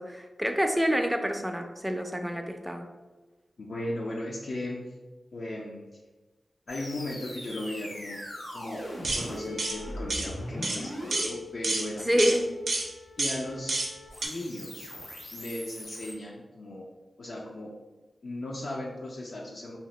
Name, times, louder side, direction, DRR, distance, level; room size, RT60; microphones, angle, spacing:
voice 1, 0.0-2.9 12.1-12.4, equal, 10° right, 5 dB, 0.4 m, -27 dB
voice 2, 3.6-4.8 5.3-5.9 6.7-8.2 8.5-12.4 13.2-13.8 14.2-14.9 15.3-16.9 17.2-17.8 18.2-19.8, left 1 dB, 70° left, -3 dB, 0.4 m, -37 dB
sound 1, 6.7-16.1, left 1 dB, 90° left, 1.0 m, -41 dB
sound 2, 9.0-9.3 9.6-9.8 10.1-10.3 10.6-10.8 11.1-11.3 11.6-11.9 12.2-12.4 12.7-12.9 13.2-13.4 13.7-13.9 14.2-14.3, right 2 dB, 80° right, 0.5 m, -29 dB
2.8 x 2.1 x 3.0 m, 1.2 s
cardioid pair, 45°, 0 cm